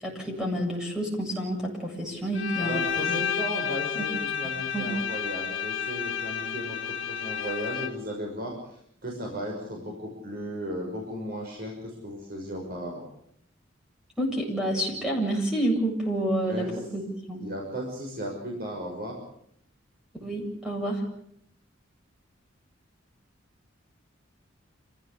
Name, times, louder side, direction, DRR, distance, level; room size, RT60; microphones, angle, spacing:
voice 1, 0.0-3.2 4.7-4.9 14.2-17.4 20.2-21.0, right 1 dB, 5° right, -1 dB, 7.7 m, -29 dB
Bowed string instrument, 2.3-8.2, left 7 dB, 70° left, 2.3 m, -31 dB
voice 2, 2.6-8.5 9.0-13.0 16.4-16.7 17.4-19.2, equal, 50° right, 0 dB, 6.2 m, -35 dB
27.5 x 16.0 x 8.4 m, 0.71 s
head